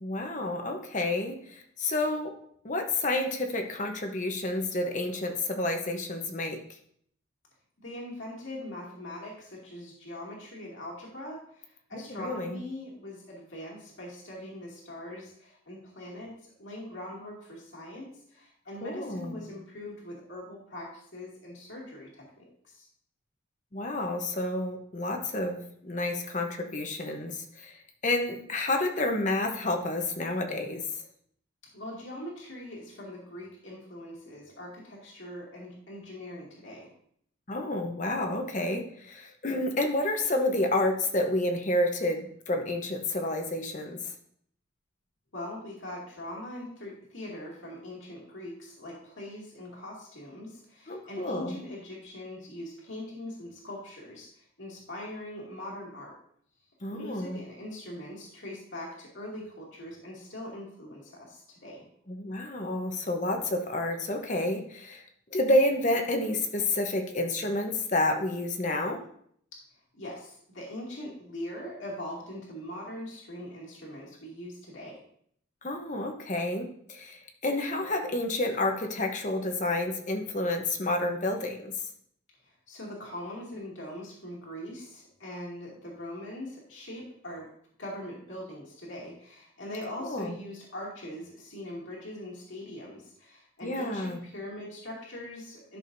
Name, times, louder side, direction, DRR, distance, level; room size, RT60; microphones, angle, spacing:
voice 1, 0.0-2.4 2.6-6.6 11.9-12.6 18.8-19.4 23.7-30.8 37.5-44.1 50.9-51.5 56.8-57.4 62.1-65.0 65.3-69.0 75.6-81.7 90.0-90.4 93.6-94.2, left 1 dB, 35° left, 4 dB, 0.9 m, -30 dB
voice 2, 7.8-22.9 31.7-36.9 45.3-56.2 56.9-61.9 69.9-75.0 82.4-87.5 87.8-95.8, left 1 dB, 70° left, -3 dB, 2.4 m, -42 dB
12.5 x 6.3 x 2.7 m, 0.65 s
head